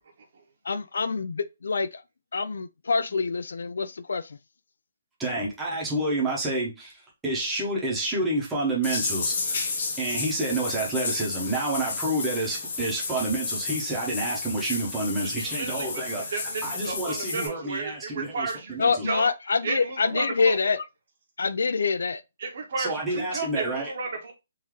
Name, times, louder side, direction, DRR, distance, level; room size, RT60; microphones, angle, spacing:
voice 1, 0.7-2.0 2.3-4.4 18.8-20.8 21.4-22.2, left 4 dB, 85° left, 0.4 m, -26 dB
voice 2, 5.2-9.7 10.0-19.1 22.8-23.9, right 2 dB, 5° right, 0.8 m, -29 dB
sound 1, 8.8-17.5, left 4 dB, 40° left, 0.9 m, -32 dB
voice 3, 15.2-16.0 16.3-19.2 19.6-20.6 22.4-24.3, right 3 dB, 45° right, 1.1 m, -33 dB
3.8 x 2.7 x 3.0 m
hypercardioid pair, 180°, 0 cm